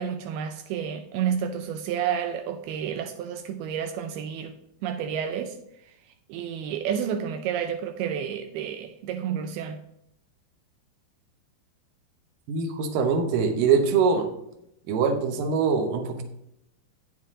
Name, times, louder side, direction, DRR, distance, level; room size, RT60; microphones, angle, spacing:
voice 1, 0.0-4.5 4.8-5.6 6.3-9.8, right 8 dB, 90° right, 2.2 m, -30 dB
voice 2, 12.5-14.3 14.9-16.2, right 5 dB, 70° right, 2.1 m, -23 dB
9.3 x 7.8 x 3.7 m
omnidirectional pair, 5.1 m